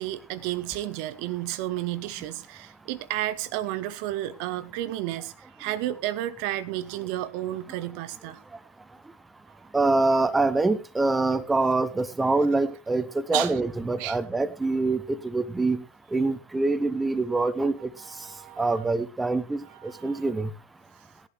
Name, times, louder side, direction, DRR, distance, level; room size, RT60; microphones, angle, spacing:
voice 1, 0.0-8.4 9.5-9.6 13.3-13.6 14.0-14.2 18.0-18.8 19.6-20.3, right 14 dB, 45° right, 15 dB, 0.8 m, -32 dB
voice 2, 9.7-15.8 16.1-17.9 18.6-20.5, right 3 dB, 10° right, 11 dB, 0.8 m, -25 dB
18.0 x 11.0 x 3.0 m, 0.27 s
figure-of-eight pair, 90°, 0 cm